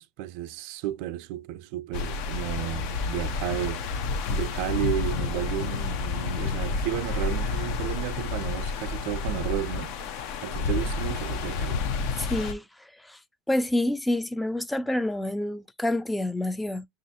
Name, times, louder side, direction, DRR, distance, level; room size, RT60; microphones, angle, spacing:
voice 1, 0.0-9.9 10.4-11.8, right 14 dB, 70° right, 0.4 m, -33 dB
sound 1, 1.9-12.5, left 4 dB, 70° left, 0.5 m, -30 dB
voice 2, 12.2-13.2 13.5-16.9, left 1 dB, 5° left, 0.3 m, -28 dB
6.1 x 2.4 x 2.7 m
supercardioid pair, 110°, 0 cm